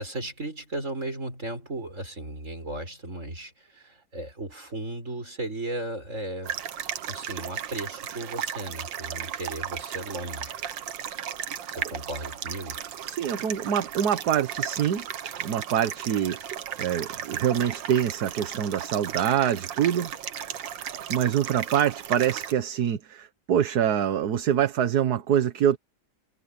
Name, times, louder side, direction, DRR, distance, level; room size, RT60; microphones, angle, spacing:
voice 1, 0.0-6.6 7.1-10.6 11.7-12.9, right 1 dB, 40° right, 7.2 m, -35 dB
sound 1, 6.4-22.5, right 9 dB, 85° right, 1.8 m, -35 dB
voice 2, 13.1-15.0 15.4-16.4 16.8-20.1 21.1-25.8, right 9 dB, 60° right, 1.5 m, -25 dB
omnidirectional pair, 2.0 m